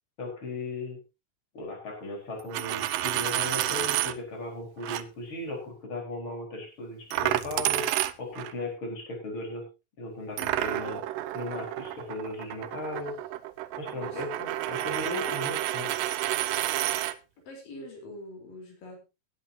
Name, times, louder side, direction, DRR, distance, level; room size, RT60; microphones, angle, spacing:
voice 1, 0.2-1.0 1.5-7.9 8.2-9.7 10.0-11.0 11.3-13.2 13.8-15.9, left 2 dB, 35° left, 1 dB, 5.2 m, -37 dB
Coin (dropping), 2.4-4.1 4.8-5.0 7.1-8.5 10.4-17.1, right 14 dB, 90° right, 2.5 m, -30 dB
voice 2, 17.4-19.1, left 1 dB, 90° left, 1 dB, 5.7 m, -44 dB
18.5 x 10.5 x 2.8 m, 0.26 s
omnidirectional pair, 3.8 m